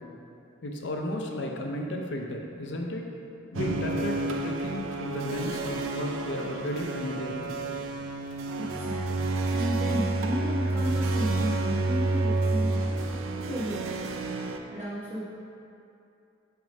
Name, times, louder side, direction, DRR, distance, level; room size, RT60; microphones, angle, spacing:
voice 1, 0.6-3.0 3.5-7.5, left 1 dB, 60° left, 1 dB, 0.6 m, -33 dB
sound 1, 3.5-14.6, right 2 dB, 75° right, 0.4 m, -29 dB
voice 2, 8.6-12.7 13.2-14.4 14.7-15.2, equal, 30° right, -9 dB, 0.9 m, -34 dB
6.1 x 3.7 x 5.2 m, 2.7 s
head